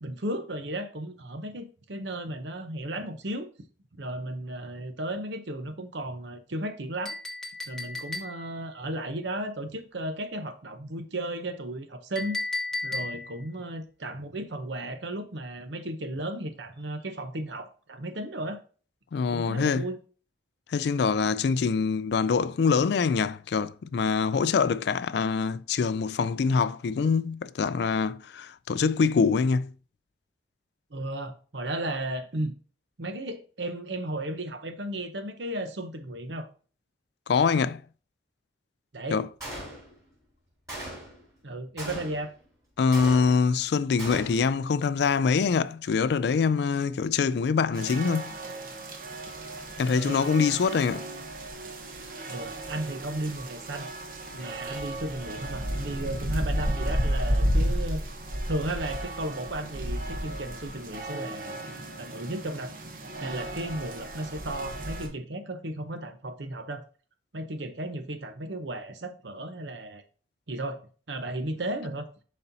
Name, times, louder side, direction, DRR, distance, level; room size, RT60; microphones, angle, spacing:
voice 1, 0.0-3.5 4.0-7.2 7.7-12.4 12.8-18.6 19.3-20.0 30.9-32.6 33.0-36.5 38.9-39.2 41.4-42.3 49.8-50.2 52.3-53.9 54.3-58.0 58.5-61.7 62.0-62.7 63.2-66.8 67.3-70.0 70.5-70.8 71.1-72.1, right 1 dB, 75° right, 0.9 m, -34 dB
Chink clink, 7.0-8.6 12.2-13.4, left 3 dB, 5° left, 0.8 m, -34 dB
voice 2, 19.1-19.9 20.7-29.7 37.3-37.8 39.1-39.3 42.8-48.3 49.8-51.0, left 5 dB, 65° left, 0.3 m, -24 dB
Gunshot gunfire, 39.4-40.1 40.7-41.3 41.8-42.4 42.9-43.6 44.0-44.6, right 1 dB, 20° right, 3.7 m, -39 dB
sound 1, 47.7-65.1, equal, 50° right, 1.1 m, -33 dB
10.5 x 4.3 x 2.7 m
head